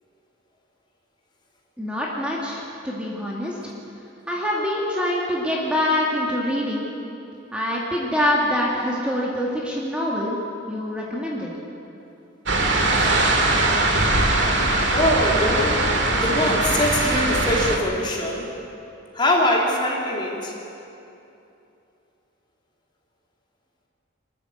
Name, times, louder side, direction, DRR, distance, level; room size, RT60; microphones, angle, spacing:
voice 1, 1.8-3.7 4.3-6.9 7.5-10.4 10.7-11.5, left 1 dB, 5° right, -4 dB, 2.2 m, -25 dB
sound 1, 12.5-17.8, right 2 dB, 65° right, 2.0 m, -21 dB
voice 2, 14.9-18.5 19.1-20.5, left 1 dB, 25° left, -2 dB, 3.2 m, -23 dB
25.5 x 13.5 x 8.2 m, 2.8 s
head